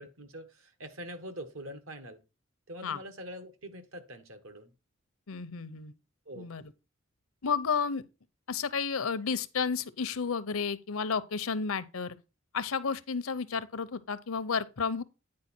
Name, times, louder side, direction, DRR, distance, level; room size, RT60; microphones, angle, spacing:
voice 1, 0.0-2.2 2.7-4.7 6.2-6.5, equal, 75° right, 1.5 m, -44 dB
voice 2, 5.3-5.9 6.4-6.7 7.4-8.0 8.5-12.2 12.5-15.0, left 5 dB, 90° left, 0.7 m, -32 dB
9.5 x 4.6 x 4.4 m
head